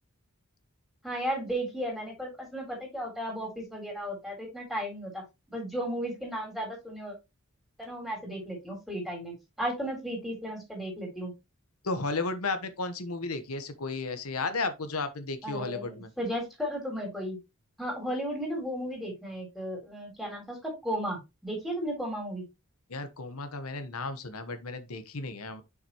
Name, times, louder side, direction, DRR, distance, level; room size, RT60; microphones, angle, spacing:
voice 1, 1.0-5.2 5.5-7.1 7.8-11.3 15.4-17.4 17.8-22.4, equal, ahead, 3.4 m, -34 dB
voice 2, 11.8-16.1 22.9-25.6, left 3 dB, 90° left, 1.1 m, -34 dB
6.7 x 5.8 x 2.9 m
head